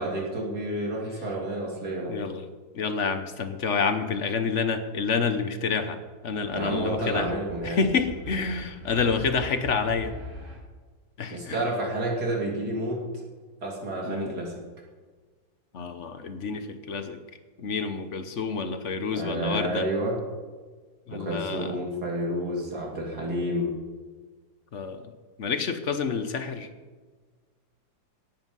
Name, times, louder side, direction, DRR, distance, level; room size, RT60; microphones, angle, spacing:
voice 1, 0.0-2.1 6.5-7.9 11.3-13.0 13.6-14.5 19.1-20.2 21.1-23.7, right 1 dB, 50° right, -2 dB, 3.5 m, -30 dB
voice 2, 2.1-2.5 2.7-6.0 6.2-7.3 7.6-10.1 11.2-11.6 14.0-14.3 15.7-17.2 17.6-19.9 21.1-21.8 24.7-25.1 25.4-26.7, left 5 dB, 50° left, 9 dB, 1.0 m, -28 dB
sound 1, 6.5-10.6, equal, 90° right, 5.9 m, -42 dB
17.5 x 9.2 x 5.4 m, 1.4 s
omnidirectional pair, 2.1 m